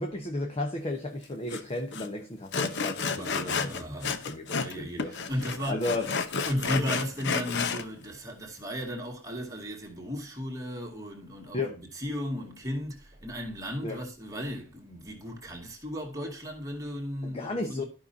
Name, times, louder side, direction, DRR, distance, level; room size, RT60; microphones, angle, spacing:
voice 1, 0.0-3.7 4.2-5.1 5.7-6.1 11.5-11.8 13.8-14.0 17.2-17.8, left 2 dB, 30° left, 0.9 m, -34 dB
Sawing, 1.5-1.6 1.9-2.1 2.5-4.7 5.0-7.8, left 5 dB, 60° left, 0.8 m, -31 dB
voice 2, 3.1-5.9 6.4-17.8, equal, 15° right, 2.1 m, -35 dB
13.5 x 5.6 x 2.7 m
head